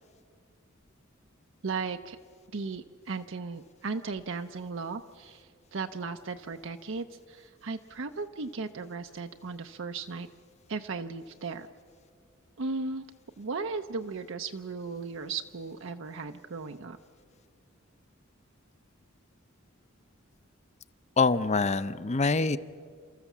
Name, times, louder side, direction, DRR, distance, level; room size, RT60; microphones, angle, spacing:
voice 1, 1.6-2.2 2.5-10.3 10.7-11.7 12.6-13.0 13.4-17.0, right 4 dB, 65° right, 6 dB, 0.7 m, -36 dB
voice 2, 21.2-22.6, left 4 dB, 35° left, 14 dB, 0.6 m, -25 dB
29.5 x 14.0 x 7.2 m, 2.1 s
head